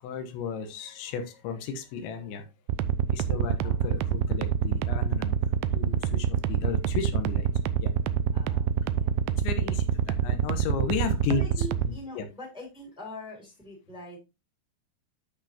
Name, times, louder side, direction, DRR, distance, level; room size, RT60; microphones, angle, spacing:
voice 1, 0.0-2.5 3.1-5.3 5.7-7.5 7.8-7.9 9.4-11.4 11.8-12.3, left 6 dB, 85° left, 8 dB, 3.4 m, -34 dB
sound 1, 2.7-11.9, right 8 dB, 85° right, 2.3 m, -26 dB
voice 2, 3.6-3.9 8.3-9.2 11.3-14.2, equal, ahead, 0 dB, 3.0 m, -43 dB
12.0 x 5.3 x 2.8 m, 0.25 s
omnidirectional pair, 5.1 m